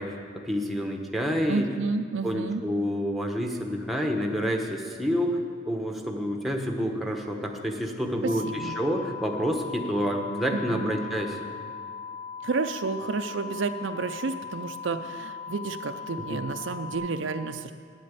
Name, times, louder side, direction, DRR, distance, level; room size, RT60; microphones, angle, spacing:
voice 1, 0.0-1.7 2.2-5.4 5.7-11.4 16.3-16.4, equal, ahead, 2 dB, 0.9 m, -28 dB
voice 2, 1.5-2.6 8.2-8.8 10.5-10.9 12.4-17.7, right 4 dB, 65° right, 8 dB, 0.5 m, -31 dB
sound 1, 8.3-17.0, left 5 dB, 50° left, 1.6 m, -39 dB
9.6 x 8.5 x 8.4 m, 2.1 s
head